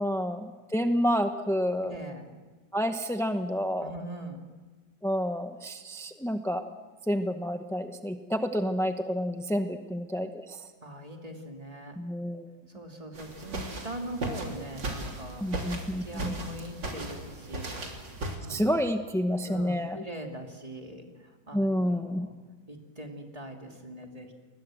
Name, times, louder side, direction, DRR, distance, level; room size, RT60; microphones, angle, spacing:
voice 1, 0.0-1.9 2.7-3.9 5.0-6.7 7.1-10.7 12.0-12.5 15.4-16.4 18.5-20.0 21.5-22.3, equal, 5° left, 7 dB, 0.5 m, -29 dB
voice 2, 1.8-2.2 3.8-4.4 10.8-12.0 12.7-15.4 16.0-17.8 18.4-18.6 19.4-22.3 22.7-24.3, right 1 dB, 20° right, 2 dB, 3.0 m, -41 dB
sound 1, 13.2-18.4, right 2 dB, 80° right, 3.9 m, -37 dB
29.5 x 21.5 x 7.8 m, 1.3 s
omnidirectional pair, 1.9 m